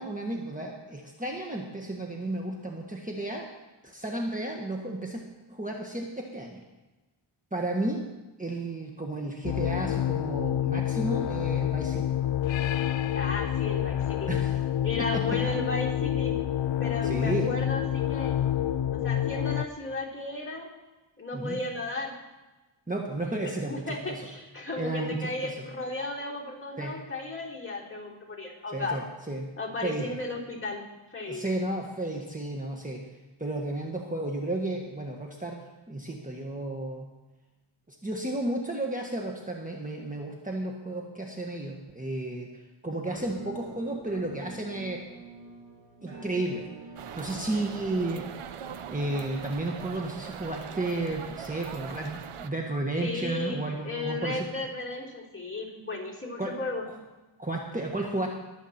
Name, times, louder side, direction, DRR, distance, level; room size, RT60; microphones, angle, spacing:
voice 1, 0.0-3.5 3.8-5.2 5.5-6.6 7.5-8.1 8.4-12.1 14.3-14.5 15.1-15.4 17.0-17.5 21.3-21.6 22.9-24.3 24.8-25.5 26.8-27.0 28.7-29.0 29.3-29.5 29.8-30.1 31.3-33.0 33.4-35.6 35.9-37.1 37.9-42.5 42.8-45.0 46.0-46.6 47.2-48.2 48.9-54.5 56.4-56.5 57.4-58.3, right 2 dB, 15° right, 0 dB, 1.5 m, -33 dB
sound 1, 9.4-19.6, left 11 dB, 65° left, 0.6 m, -28 dB
voice 2, 13.1-14.3 14.8-16.5 16.8-18.4 18.9-20.7 21.2-22.2 23.2-29.1 29.6-30.8 31.1-31.5 53.0-56.8, left 2 dB, 25° left, -3 dB, 3.6 m, -35 dB
Musical instrument, 43.1-52.8, right 3 dB, 60° right, 4.9 m, -48 dB
sound 2, 47.0-52.5, right 8 dB, 90° right, 0.8 m, -41 dB
22.0 x 8.3 x 4.3 m, 1.1 s
wide cardioid pair, 75°, 49 cm